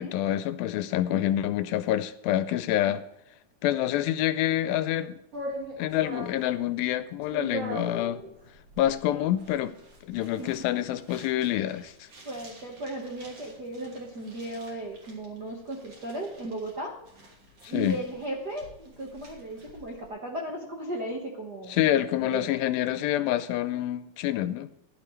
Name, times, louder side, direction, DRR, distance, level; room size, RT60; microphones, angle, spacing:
voice 1, 0.0-3.0 3.6-5.2 5.8-8.2 8.8-9.7 10.1-11.9 17.6-18.0 21.7-24.7, left 12 dB, 80° left, 13 dB, 2.3 m, -27 dB
sound 1, 5.3-20.1, right 2 dB, 40° right, 3.8 m, -43 dB
voice 2, 12.2-17.0 17.7-22.5, right 1 dB, 90° right, 1 dB, 0.9 m, -36 dB
15.0 x 11.0 x 3.2 m, 0.83 s
omnidirectional pair, 4.3 m